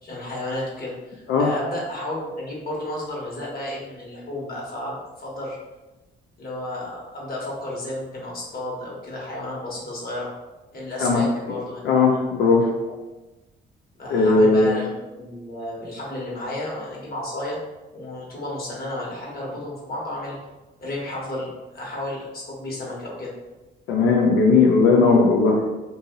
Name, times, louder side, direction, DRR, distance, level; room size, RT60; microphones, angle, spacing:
voice 1, 0.0-5.6 6.4-10.3 10.7-11.8 12.1-12.2 12.8-13.0 14.0-17.6 17.9-20.4 20.8-21.5 21.7-23.3, left 1 dB, 50° left, -4 dB, 1.3 m, -32 dB
voice 2, 11.9-12.7 14.1-14.7 23.9-25.7, left 4 dB, 90° left, -2 dB, 0.5 m, -17 dB
2.7 x 2.6 x 3.8 m, 1.1 s
cardioid pair, 90°, 20 cm